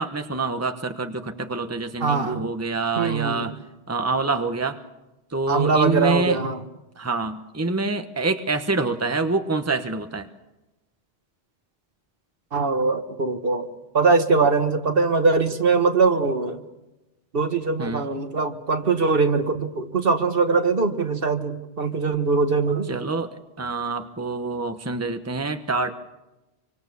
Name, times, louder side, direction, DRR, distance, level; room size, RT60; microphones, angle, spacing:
voice 1, 0.0-3.5 3.9-4.8 5.3-6.4 7.0-10.3 17.8-18.1 22.9-25.9, right 3 dB, 15° right, 7 dB, 1.1 m, -26 dB
voice 2, 2.0-2.4 3.0-3.5 5.5-6.6 12.5-16.6 17.3-22.9, right 4 dB, 60° right, 7 dB, 1.6 m, -22 dB
26.0 x 25.0 x 7.0 m, 1.0 s
omnidirectional pair, 1.1 m